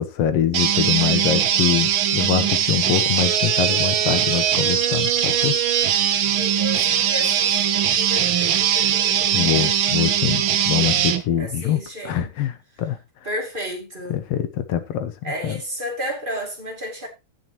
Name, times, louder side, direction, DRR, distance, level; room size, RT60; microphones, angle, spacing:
voice 1, 0.0-5.6 9.3-13.0 14.1-15.1 15.4-15.6, left 9 dB, 65° left, 1.8 m, -24 dB
sound 1, 0.5-11.2, right 9 dB, 85° right, 1.1 m, -20 dB
voice 2, 6.4-9.8 11.4-12.3 13.2-14.2 15.2-17.1, equal, 15° right, 2.5 m, -32 dB
16.5 x 7.1 x 3.0 m
omnidirectional pair, 3.6 m